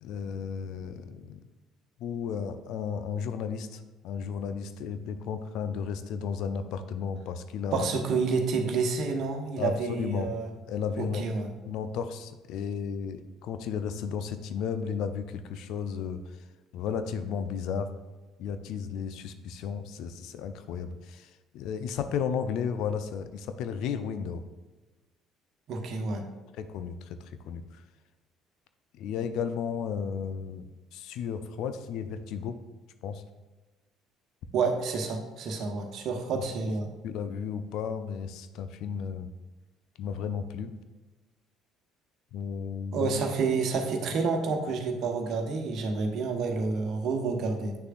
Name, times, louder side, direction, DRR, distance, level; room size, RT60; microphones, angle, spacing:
voice 1, 0.0-1.5 2.0-7.9 9.6-10.3 10.7-11.2 11.6-16.4 16.7-17.9 18.4-24.4 26.6-27.8 28.9-32.6 33.0-33.2 36.3-36.4 37.0-39.3 40.0-40.7 42.3-43.2, left 7 dB, 60° left, 10 dB, 0.5 m, -34 dB
voice 2, 7.7-10.5 11.0-11.5 25.7-26.3 34.5-36.9 42.9-47.8, right 4 dB, 55° right, 4 dB, 1.1 m, -29 dB
8.8 x 6.5 x 2.5 m, 1.2 s
figure-of-eight pair, 55°, 0 cm